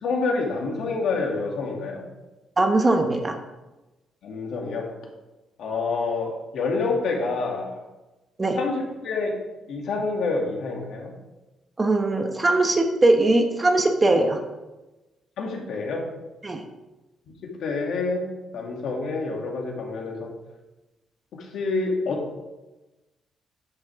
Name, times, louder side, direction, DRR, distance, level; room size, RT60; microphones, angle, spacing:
voice 1, 0.0-2.0 4.2-4.9 5.6-7.8 8.5-9.3 9.7-11.1 15.4-16.0 17.4-18.3 18.5-20.3 21.3-22.2, left 3 dB, 70° left, 0 dB, 2.6 m, -27 dB
voice 2, 2.6-3.4 8.4-8.6 11.8-14.4 16.4-16.6, right 2 dB, 20° right, 5 dB, 1.1 m, -20 dB
10.0 x 9.7 x 3.6 m, 1.1 s
cardioid pair, 135°, 0 cm